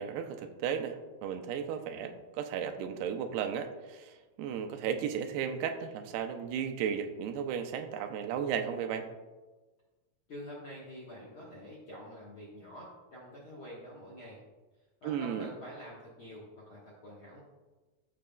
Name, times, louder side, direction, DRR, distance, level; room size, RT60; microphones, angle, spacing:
voice 1, 0.0-9.1 15.0-15.5, right 8 dB, 90° right, 7 dB, 2.7 m, -35 dB
voice 2, 10.3-14.4 15.0-17.4, equal, 60° left, -6 dB, 1.3 m, -47 dB
14.0 x 6.4 x 2.3 m, 1.2 s
omnidirectional pair, 4.5 m